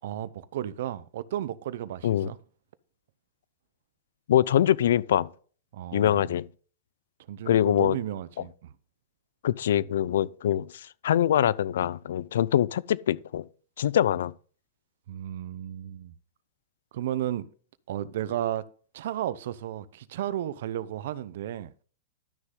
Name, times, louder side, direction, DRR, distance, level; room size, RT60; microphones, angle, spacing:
voice 1, 0.0-2.4 5.7-6.3 7.3-8.7 15.1-16.1 16.9-17.5 17.9-18.7 18.9-21.7, right 11 dB, 65° right, 0.7 m, -33 dB
voice 2, 4.3-5.3 5.9-6.5 7.5-8.0 9.4-13.5 13.8-14.3, left 11 dB, 80° left, 0.5 m, -24 dB
12.0 x 6.4 x 3.8 m
supercardioid pair, 145°, 0 cm